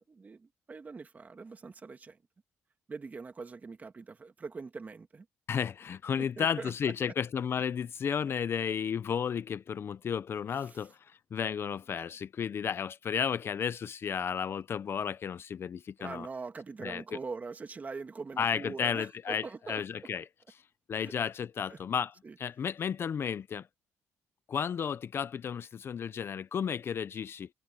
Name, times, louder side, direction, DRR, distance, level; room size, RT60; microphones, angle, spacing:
voice 1, 0.0-2.2 2.9-5.3 6.2-7.1 10.5-10.9 16.0-20.1 21.0-21.1 21.7-21.8 22.2-22.4, right 4 dB, 30° right, 2.6 m, -43 dB
voice 2, 5.5-16.3 16.8-17.0 18.4-20.2 20.9-22.1 22.4-23.7 24.5-27.5, left 7 dB, 45° left, 0.7 m, -33 dB
cardioid pair, 95°, 6 cm